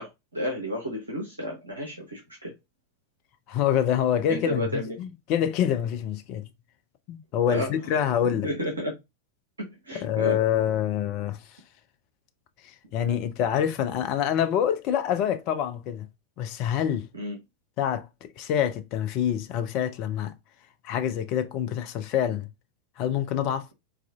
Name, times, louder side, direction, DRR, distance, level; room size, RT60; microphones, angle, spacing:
voice 1, 0.0-2.5 4.3-4.9 7.5-7.7 8.4-8.9 9.6-10.4 17.1-17.4, equal, 80° right, 0.8 m, -32 dB
voice 2, 3.5-6.4 7.1-8.5 10.0-11.4 12.9-16.1 16.4-17.1 17.8-20.3 20.8-22.5 23.0-23.7, left 9 dB, 40° left, 0.4 m, -26 dB
4.1 x 2.4 x 2.2 m
figure-of-eight pair, 90°, 0 cm